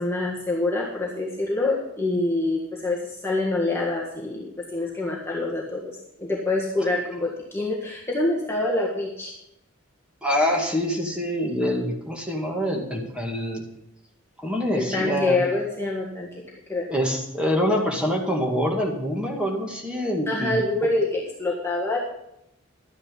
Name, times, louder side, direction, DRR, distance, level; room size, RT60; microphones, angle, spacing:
voice 1, 0.0-9.3 14.7-16.3 16.7-16.8 20.3-22.0, left 2 dB, 10° left, -3 dB, 1.6 m, -26 dB
voice 2, 10.2-13.6 14.4-15.4 16.9-20.6, equal, 5° right, -1 dB, 2.1 m, -25 dB
12.5 x 9.6 x 5.4 m, 0.81 s
head